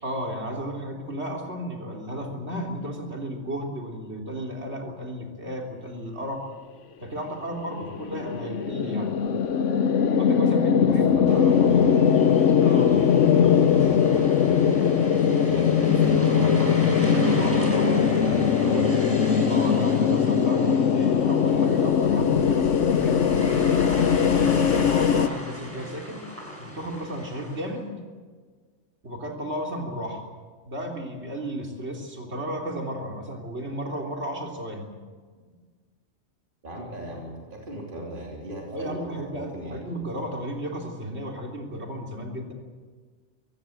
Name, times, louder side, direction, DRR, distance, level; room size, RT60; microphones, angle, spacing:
voice 1, 0.0-6.4 7.0-9.1 10.2-11.0 12.6-13.0 15.4-15.7 17.0-17.9 19.5-23.8 24.3-26.2 26.6-28.0 29.0-30.2 30.6-34.9 35.4-35.5 37.0-37.1 38.7-42.5, right 1 dB, 65° right, 1 dB, 3.8 m, -33 dB
sound 1, 7.5-25.3, left 7 dB, 90° left, 1.1 m, -21 dB
voice 2, 10.8-12.3 12.8-15.0 15.5-16.8 17.2-19.4 36.6-39.8, right 1 dB, 45° right, -2 dB, 3.6 m, -38 dB
sound 2, 11.2-27.4, equal, 50° left, 4.3 m, -45 dB
sound 3, 11.3-27.7, left 1 dB, 10° right, 5.1 m, -35 dB
23.5 x 16.5 x 8.0 m, 1.5 s
omnidirectional pair, 1.2 m